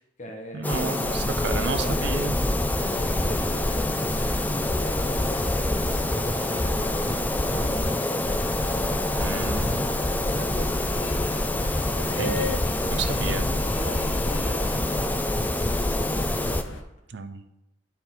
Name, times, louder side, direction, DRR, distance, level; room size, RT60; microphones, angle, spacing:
voice 1, 0.0-1.3 1.7-2.1 3.1-11.9 12.8-16.1, equal, 40° left, 2 dB, 1.3 m, -42 dB
voice 2, 0.5-2.3 9.2-9.8 12.2-12.6 12.9-13.5 17.1-17.4, right 5 dB, 60° right, 9 dB, 0.5 m, -32 dB
sound 1, 0.6-16.6, left 1 dB, 10° left, 0.3 m, -26 dB
sound 2, 2.8-16.8, left 2 dB, 80° left, 0.9 m, -37 dB
11.0 x 4.3 x 3.9 m, 0.89 s
head